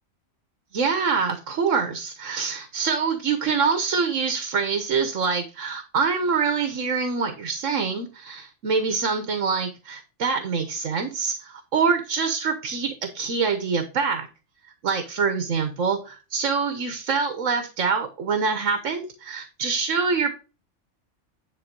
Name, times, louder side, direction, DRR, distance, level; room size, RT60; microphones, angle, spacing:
voice 1, 0.7-14.3 14.8-20.3, right 5 dB, 90° right, 7 dB, 1.5 m, -25 dB
10.5 x 3.7 x 5.3 m, 0.32 s
omnidirectional pair, 1.3 m